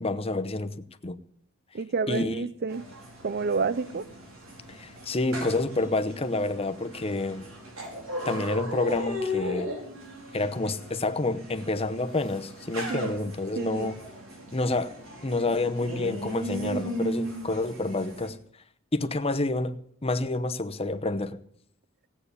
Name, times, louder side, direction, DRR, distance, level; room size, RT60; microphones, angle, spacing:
voice 1, 0.0-0.7 1.0-1.2 2.1-2.4 4.7-7.5 8.2-9.7 10.3-14.0 14.5-14.9 15.2-18.4 18.9-21.4, left 2 dB, 30° left, 0.8 m, -28 dB
voice 2, 1.7-2.9 3.2-4.1 12.9-14.0, right 4 dB, 50° right, 0.5 m, -30 dB
sound 1, 2.7-18.3, equal, 90° right, 4.7 m, -37 dB
16.5 x 8.6 x 8.3 m
head